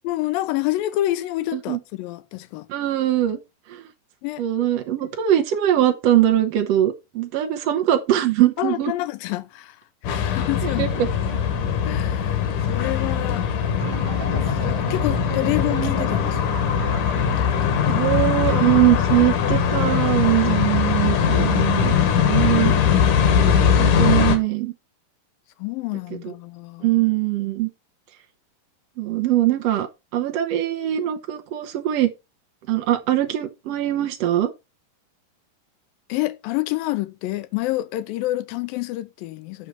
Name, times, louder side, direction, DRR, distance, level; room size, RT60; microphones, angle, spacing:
voice 1, 0.1-2.7 4.2-4.4 8.6-9.8 10.0-11.1 11.8-13.5 14.5-16.7 17.5-17.8 22.3-23.0 25.6-27.1 36.1-39.7, left 16 dB, 80° left, 2.4 m, -28 dB
voice 2, 2.7-3.4 3.7-3.8 4.4-8.9 10.8-11.4 17.7-22.7 23.8-24.7 26.2-26.3 26.8-27.7 29.0-29.9 30.1-32.1 32.7-34.5, right 13 dB, 80° right, 1.4 m, -21 dB
sound 1, 10.0-24.4, left 7 dB, 65° left, 2.8 m, -21 dB
sound 2, 13.8-19.0, right 4 dB, 55° right, 1.4 m, -35 dB
8.4 x 6.5 x 4.1 m
omnidirectional pair, 4.1 m